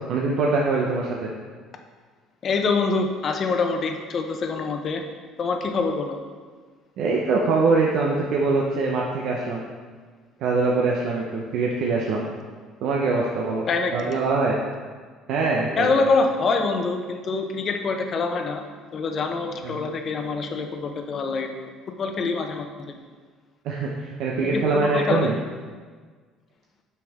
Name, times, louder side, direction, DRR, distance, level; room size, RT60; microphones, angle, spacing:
voice 1, 0.1-1.3 7.0-9.6 10.4-12.3 12.8-13.7 13.9-14.6 15.3-15.9 19.6-19.8 23.6-25.3, right 3 dB, 65° right, -2 dB, 0.9 m, -23 dB
voice 2, 2.4-5.0 5.4-6.2 13.7-14.2 15.8-18.6 18.9-21.5 21.9-22.9 24.4-25.3, left 4 dB, 45° left, 4 dB, 0.9 m, -25 dB
8.3 x 5.7 x 3.6 m, 1.5 s
supercardioid pair, 90°, 0 cm